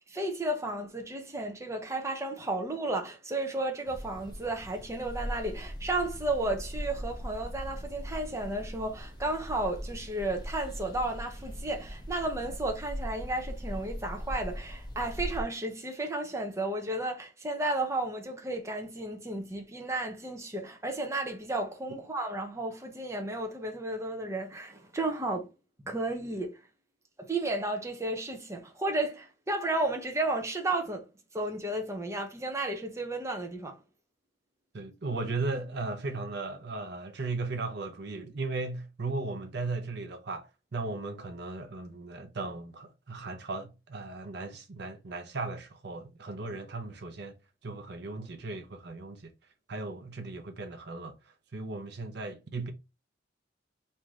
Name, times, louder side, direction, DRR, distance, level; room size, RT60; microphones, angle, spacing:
voice 1, 0.0-25.5 25.8-26.6 27.2-31.1 31.3-33.8, right 2 dB, 15° right, 0.7 m, -33 dB
sound 1, 3.9-15.4, equal, 25° left, 0.7 m, -40 dB
voice 2, 34.7-47.3 47.6-49.3 49.7-52.7, right 3 dB, 65° right, 0.7 m, -36 dB
3.2 x 2.8 x 3.6 m
head